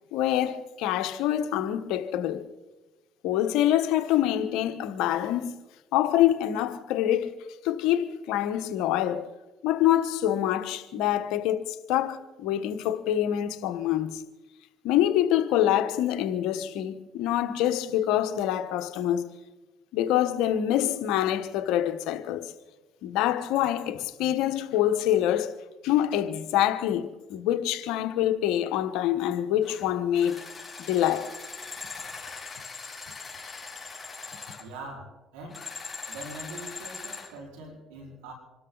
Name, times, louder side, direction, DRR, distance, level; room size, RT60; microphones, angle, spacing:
voice 1, 0.1-2.4 3.2-5.5 5.9-7.3 7.6-9.3 9.6-14.2 14.8-19.3 19.9-22.5 23.0-25.5 25.8-30.4 30.8-31.3, left 12 dB, 80° left, 1.2 m, -26 dB
sound 1, 29.6-29.8 30.1-34.6 35.5-37.3, left 4 dB, 15° left, 5.2 m, -40 dB
voice 2, 34.6-35.7 36.1-38.3, right 2 dB, 85° right, 4.8 m, -43 dB
26.5 x 13.0 x 4.0 m
supercardioid pair, 65°, 0 cm